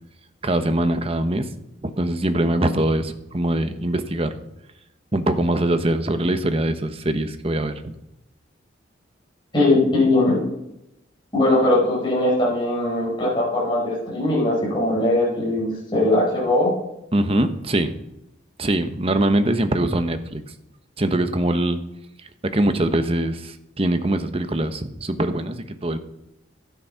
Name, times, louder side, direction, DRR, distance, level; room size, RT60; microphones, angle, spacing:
voice 1, 0.4-1.5 1.8-4.4 5.1-7.9 17.1-18.0 18.6-20.5 21.0-21.8 22.4-26.0, right 1 dB, 30° right, 9 dB, 1.0 m, -22 dB
voice 2, 9.5-10.5 11.3-16.7, left 2 dB, 25° left, -7 dB, 5.9 m, -20 dB
12.5 x 9.8 x 5.8 m, 0.87 s
head